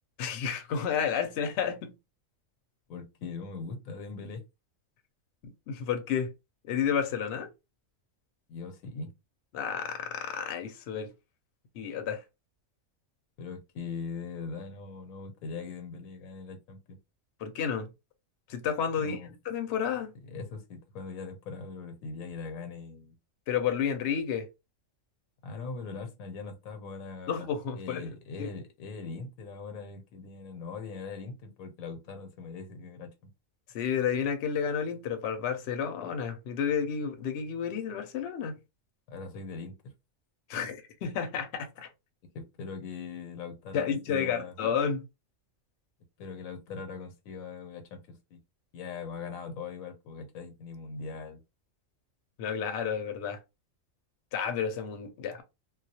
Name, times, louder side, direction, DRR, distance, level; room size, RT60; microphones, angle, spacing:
voice 1, 0.2-1.9 5.7-6.3 6.6-7.5 9.5-11.1 11.7-12.2 17.4-17.9 18.5-19.2 19.4-20.1 23.5-24.5 27.3-28.1 28.4-28.5 33.7-38.6 40.5-41.9 43.7-45.0 52.4-53.4 54.3-55.4, left 7 dB, 65° left, 0.7 m, -31 dB
voice 2, 2.9-4.4 8.5-9.1 13.4-17.0 19.0-19.3 20.3-23.1 25.4-27.4 27.8-33.1 39.1-39.9 42.3-44.6 46.2-48.4 48.7-51.4, left 4 dB, 90° left, 1.0 m, -41 dB
2.3 x 2.0 x 2.7 m
omnidirectional pair, 1.4 m